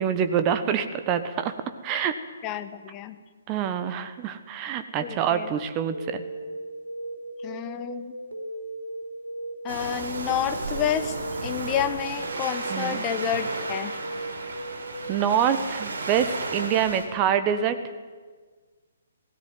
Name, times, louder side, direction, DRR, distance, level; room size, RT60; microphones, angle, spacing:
voice 1, 0.0-1.5 1.8-2.2 3.5-6.2 12.7-13.0 15.1-17.8, right 8 dB, 25° right, 9 dB, 1.2 m, -25 dB
voice 2, 2.4-3.2 5.0-5.5 7.4-8.1 9.6-11.1 11.4-14.0, left 10 dB, 25° left, 10 dB, 1.2 m, -30 dB
sound 1, 5.9-15.5, right 1 dB, 75° right, 4.3 m, -37 dB
Waves surf, 9.7-17.0, right 3 dB, 60° right, 4.0 m, -34 dB
18.0 x 17.0 x 9.3 m, 1.5 s
figure-of-eight pair, 130°, 0 cm